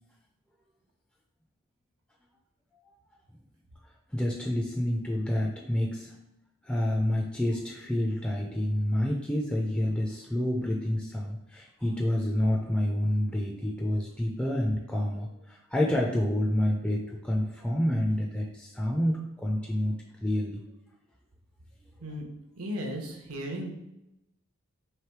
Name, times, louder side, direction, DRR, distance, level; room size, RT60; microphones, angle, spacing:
voice 1, 4.1-6.1 6.6-20.6, left 1 dB, 5° left, -1 dB, 0.3 m, -28 dB
voice 2, 22.5-23.8, equal, 80° right, 2 dB, 0.8 m, -35 dB
3.3 x 3.0 x 4.5 m, 0.89 s
head